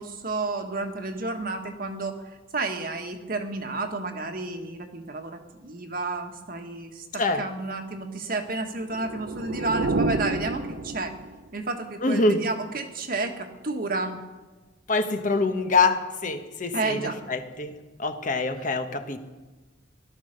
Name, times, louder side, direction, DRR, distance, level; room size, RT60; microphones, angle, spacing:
voice 1, 0.0-11.1 11.5-14.2 16.7-17.2, right 3 dB, 50° right, 5 dB, 1.5 m, -31 dB
sound 1, 8.8-11.5, right 3 dB, 70° right, 0.7 m, -29 dB
voice 2, 12.0-12.4 14.9-19.2, left 3 dB, 40° left, 7 dB, 1.2 m, -25 dB
17.0 x 12.5 x 6.6 m, 1.2 s
head